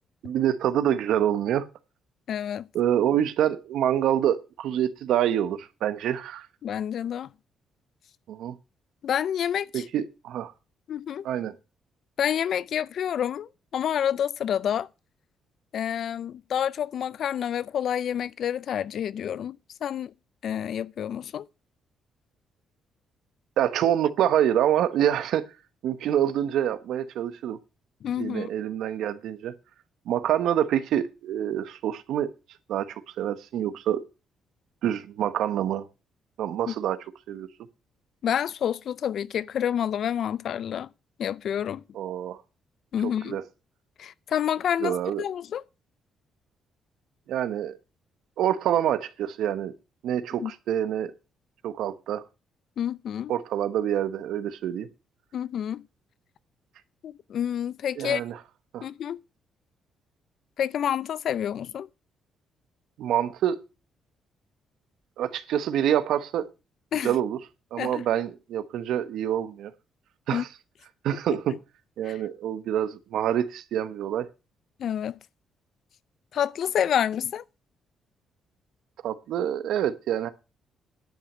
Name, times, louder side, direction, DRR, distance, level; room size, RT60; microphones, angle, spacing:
voice 1, 0.2-1.7 2.7-6.5 8.3-8.6 9.7-10.5 11.2-11.6 23.6-25.4 25.8-27.6 28.2-29.5 30.1-32.3 32.7-34.0 34.8-35.9 36.4-37.0 37.3-37.5 41.9-42.4 43.0-43.4 44.8-45.2 47.3-47.8 48.4-49.7 50.0-51.1 51.6-52.2 53.3-54.9 58.0-58.4 58.7-58.9 63.0-63.6 65.2-66.5 67.0-67.4 67.7-69.7 70.3-70.5 71.0-71.6 72.0-74.3 79.0-80.3, right 10 dB, 80° right, 1.0 m, -26 dB
voice 2, 2.3-2.7 6.6-7.3 9.0-9.8 10.9-11.2 12.2-14.9 15.7-20.1 20.4-21.5 28.0-28.5 36.7-36.8 38.2-40.9 41.2-41.8 42.9-43.4 44.0-45.6 50.4-50.5 52.8-53.3 55.3-55.8 57.0-58.2 58.8-59.2 60.6-61.9 66.9-67.1 67.8-68.0 70.3-70.4 72.1-72.2 74.8-75.2 76.3-77.4, left 9 dB, 65° left, 0.5 m, -28 dB
10.5 x 5.8 x 7.3 m
cardioid pair, 90°, 0 cm